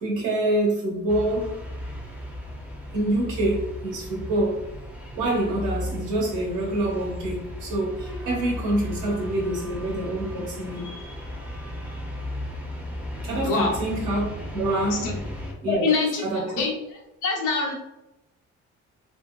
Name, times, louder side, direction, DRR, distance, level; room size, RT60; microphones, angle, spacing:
voice 1, 0.0-1.6 2.9-4.6 5.1-10.9 13.2-14.3 14.5-15.1 15.6-15.8 16.2-16.5, right 1 dB, 85° right, -2 dB, 1.1 m, -26 dB
sound 1, 1.1-15.5, left 1 dB, 5° right, 0.4 m, -35 dB
voice 2, 15.7-16.7 17.2-17.7, left 4 dB, 90° left, 0 dB, 0.7 m, -25 dB
2.7 x 2.2 x 2.2 m, 0.92 s
cardioid pair, 90°, 30 cm